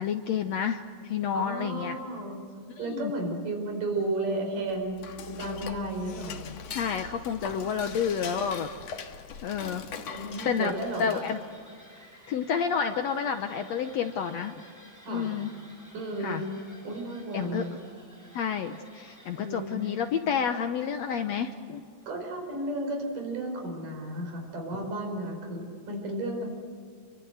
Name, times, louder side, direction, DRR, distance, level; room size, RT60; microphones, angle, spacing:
voice 1, 0.0-1.9 2.8-3.1 6.7-8.7 9.4-9.8 10.4-10.7 11.0-11.4 12.3-14.6 15.1-15.5 16.2-16.4 17.3-17.6 18.3-21.8, left 7 dB, 75° left, 7 dB, 1.6 m, -29 dB
voice 2, 1.3-2.4 2.8-6.4 7.4-7.7 10.1-11.2 15.0-15.3 15.9-16.5 16.8-17.7 19.3-19.8 22.1-26.4, right 2 dB, 60° right, 2 dB, 6.3 m, -33 dB
Dishes pots and pans / Cutlery silverware, 4.6-11.5, left 6 dB, 55° left, 2.3 m, -42 dB
sound 1, 10.0-22.4, equal, 5° right, 7.6 m, -55 dB
28.0 x 24.5 x 8.0 m, 2.2 s
omnidirectional pair, 4.2 m